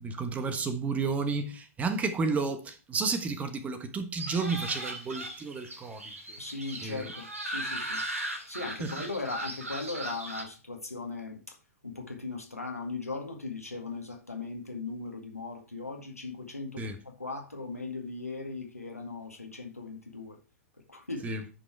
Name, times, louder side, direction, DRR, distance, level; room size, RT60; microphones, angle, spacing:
voice 1, 0.0-6.0 6.3-6.4 6.8-7.1 8.8-8.9 16.8-16.9 21.2-21.4, right 4 dB, 20° right, 1.2 m, -31 dB
sound 1, 4.2-10.4, right 1 dB, 75° right, 2.3 m, -38 dB
voice 2, 6.4-8.0 8.5-11.6 11.8-20.4 20.9-21.4, left 3 dB, 85° left, 1.9 m, -38 dB
10.0 x 5.4 x 4.6 m
figure-of-eight pair, 100°, 8 cm